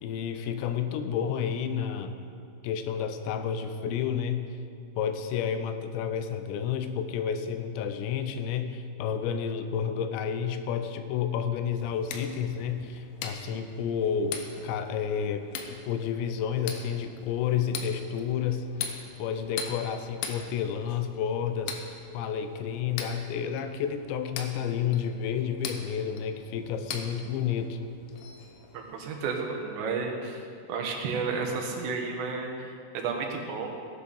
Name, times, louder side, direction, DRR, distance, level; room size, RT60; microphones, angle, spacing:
voice 1, 0.0-2.1 2.6-4.5 5.0-18.7 19.2-21.8 22.1-27.8, left 7 dB, 85° left, 9 dB, 3.0 m, -30 dB
sound 1, 11.8-29.2, left 6 dB, 70° left, 2.4 m, -42 dB
voice 2, 28.7-30.4 30.7-33.7, right 4 dB, 80° right, 1 dB, 3.7 m, -32 dB
17.5 x 9.0 x 5.5 m, 2.4 s
omnidirectional pair, 5.0 m